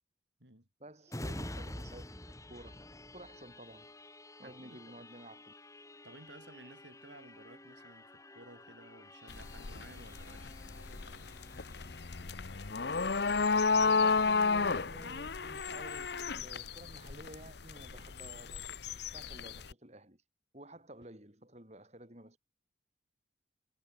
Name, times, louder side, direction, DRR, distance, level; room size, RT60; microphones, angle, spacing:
voice 1, 0.8-2.0 2.5-2.8 3.1-3.9 4.4-5.5 13.7-18.8 19.1-20.2 20.5-22.4, right 1 dB, 35° right, 4.8 m, -52 dB
sound 1, 1.1-14.4 14.9-15.0, left 1 dB, 15° left, 3.5 m, -49 dB
voice 2, 4.4-5.1 6.0-11.3, right 2 dB, 65° right, 7.9 m, -56 dB
sound 2, 9.3-19.7, left 4 dB, 55° left, 0.8 m, -32 dB
head